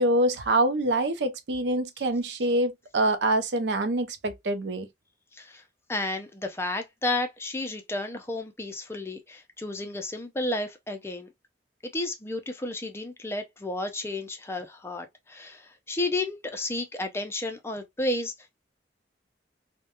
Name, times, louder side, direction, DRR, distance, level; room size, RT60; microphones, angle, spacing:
voice 1, 0.0-4.9, right 1 dB, 75° right, 0.5 m, -25 dB
voice 2, 5.3-5.6 5.9-11.3 11.8-18.3, left 2 dB, 15° left, 0.4 m, -32 dB
2.3 x 2.1 x 2.8 m
head